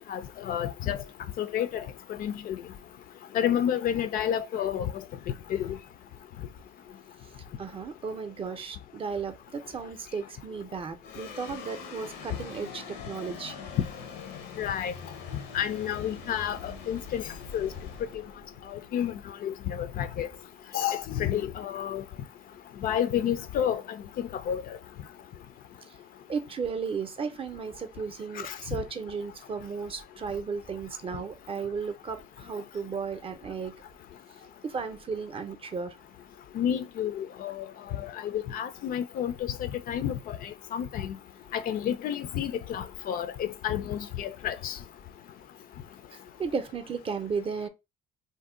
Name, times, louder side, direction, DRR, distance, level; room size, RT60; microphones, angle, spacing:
voice 1, 0.1-1.0 1.4-1.8 2.2-2.6 3.3-4.9 5.5-5.8 14.6-14.9 15.5-17.2 17.5-17.7 18.9-19.1 19.4-20.3 20.7-22.0 22.8-23.8 24.2-24.6 28.4-28.5 36.5-37.6 38.2-39.3 39.6-41.1 41.5-44.8, left 10 dB, 60° left, 0.4 m, -30 dB
voice 2, 7.6-13.5 26.3-33.7 34.6-35.9 46.4-47.7, right 5 dB, 35° right, 0.5 m, -34 dB
sound 1, 11.0-19.6, left 5 dB, 85° left, 0.7 m, -44 dB
2.6 x 2.1 x 3.6 m
cardioid pair, 110°, 17 cm